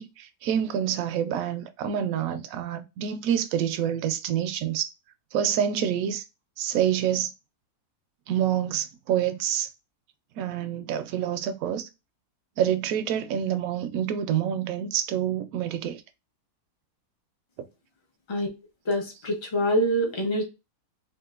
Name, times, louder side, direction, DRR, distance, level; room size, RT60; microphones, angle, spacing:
voice 1, 0.0-4.9 5.3-6.2 6.6-7.3 8.3-9.7 10.4-11.9 12.6-16.0, right 10 dB, 70° right, 0.9 m, -27 dB
voice 2, 18.9-20.4, equal, 30° left, 0.5 m, -25 dB
3.6 x 2.4 x 2.4 m
omnidirectional pair, 1.7 m